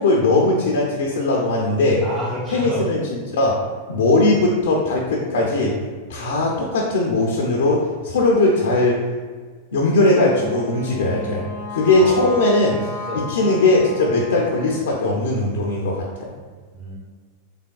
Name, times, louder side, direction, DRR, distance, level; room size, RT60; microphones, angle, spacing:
voice 1, 0.0-2.0 2.5-3.6 3.9-5.7 6.1-9.0 9.7-12.8 13.1-16.3, left 2 dB, 70° left, -2 dB, 0.5 m, -19 dB
voice 2, 2.0-2.9 12.0-12.3 13.1-13.3 16.7-17.0, right 2 dB, 25° right, -7 dB, 0.8 m, -29 dB
Wind instrument woodwind instrument, 9.9-14.9, left 2 dB, 75° right, 1.5 m, -34 dB
3.3 x 3.3 x 2.3 m, 1.5 s
figure-of-eight pair, 95°, 0 cm